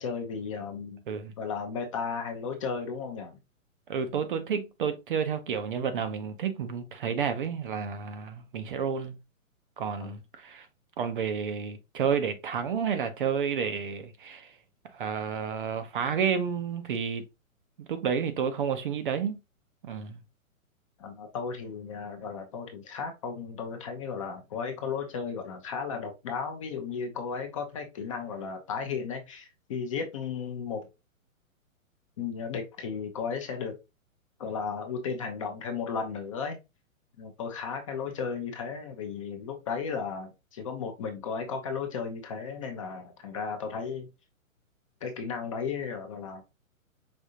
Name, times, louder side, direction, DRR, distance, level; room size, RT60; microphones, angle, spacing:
voice 1, 0.0-1.0 1.4-3.4 10.0-10.2 21.0-30.8 32.2-33.8 34.4-36.6 37.2-44.1 45.0-46.4, left 5 dB, 25° left, 0.5 m, -35 dB
voice 2, 3.9-9.2 9.8-10.7 11.0-14.6 14.9-17.2 17.8-19.4 19.8-20.2, right 7 dB, 40° right, 0.5 m, -30 dB
5.0 x 2.6 x 2.7 m
hypercardioid pair, 140°, 42 cm